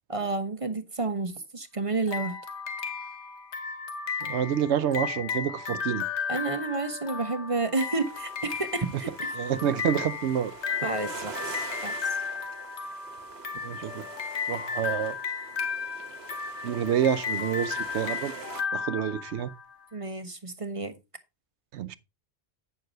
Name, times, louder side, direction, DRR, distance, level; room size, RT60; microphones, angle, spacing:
voice 1, 0.1-2.3 6.3-9.1 10.8-12.2 19.9-20.9, right 3 dB, 30° right, 1.0 m, -31 dB
sound 1, 2.1-19.7, left 6 dB, 85° left, 1.4 m, -34 dB
voice 2, 4.2-6.0 9.3-10.5 13.6-14.1 14.5-15.2 16.6-18.3 18.7-19.5 21.7-22.0, right 9 dB, 90° right, 1.0 m, -28 dB
sound 2, 8.0-18.6, right 5 dB, 70° right, 1.3 m, -45 dB
9.3 x 6.6 x 3.8 m
omnidirectional pair, 1.1 m